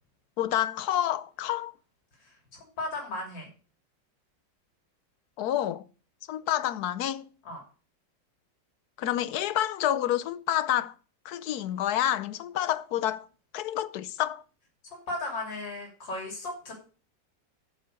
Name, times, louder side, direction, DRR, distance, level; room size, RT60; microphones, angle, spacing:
voice 1, 0.4-1.7 5.4-5.9 6.3-7.3 9.0-10.9 11.2-13.3 13.5-14.4, left 12 dB, 70° left, 1.1 m, -28 dB
voice 2, 2.2-3.5 7.4-7.6 14.9-16.7, left 2 dB, 90° left, 3.8 m, -36 dB
8.3 x 6.7 x 6.4 m
omnidirectional pair, 1.9 m